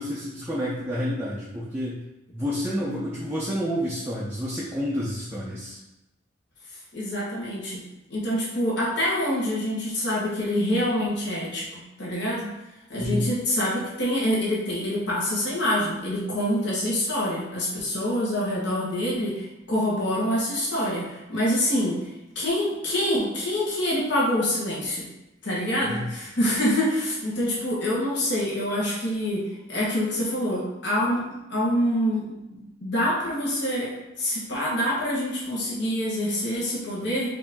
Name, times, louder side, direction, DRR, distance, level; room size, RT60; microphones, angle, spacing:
voice 1, 0.0-2.0 2.3-5.8 13.0-13.3 25.8-26.0, equal, 10° right, -6 dB, 0.5 m, -29 dB
voice 2, 6.9-7.8 8.1-12.5 12.9-25.1 25.4-29.4 29.7-37.4, equal, 55° left, -6 dB, 1.3 m, -26 dB
5.0 x 2.7 x 3.6 m, 0.96 s
head